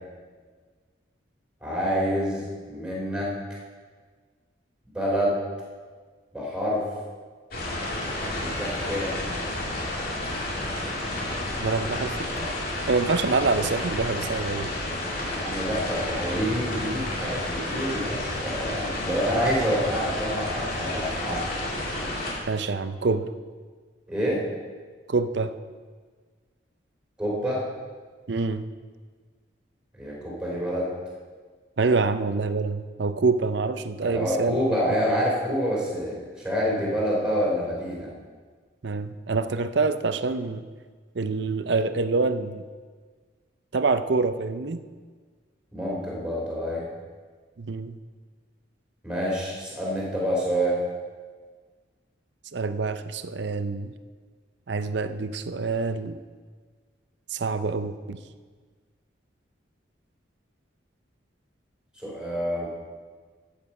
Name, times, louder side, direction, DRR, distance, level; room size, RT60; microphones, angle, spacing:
voice 1, 1.6-3.3 4.9-5.4 6.3-6.8 8.3-9.2 15.2-21.5 24.1-24.4 27.2-27.7 29.9-30.9 34.0-38.1 45.7-46.9 49.0-50.8 62.0-62.7, equal, 5° right, -5 dB, 3.3 m, -27 dB
sound 1, 7.5-22.3, left 1 dB, 50° left, 2.5 m, -31 dB
voice 2, 11.6-12.5 12.9-14.7 22.5-23.3 25.1-25.5 28.3-28.6 31.8-34.6 38.8-40.6 41.1-42.6 43.7-44.8 47.6-47.9 52.5-53.9 54.7-56.2 57.3-58.2, right 4 dB, 65° right, 11 dB, 0.6 m, -26 dB
13.0 x 8.7 x 5.4 m, 1.5 s
head